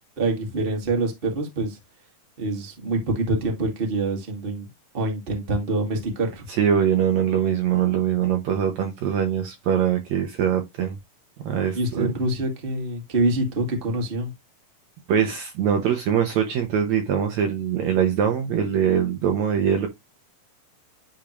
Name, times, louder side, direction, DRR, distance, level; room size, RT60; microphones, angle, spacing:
voice 1, 0.2-1.8 2.4-4.7 4.9-6.4 11.7-14.3, right 2 dB, 25° right, 1.4 m, -25 dB
voice 2, 6.6-11.0 11.4-12.1 15.1-19.9, right 8 dB, 70° right, 2.0 m, -22 dB
10.0 x 3.6 x 3.0 m
omnidirectional pair, 3.9 m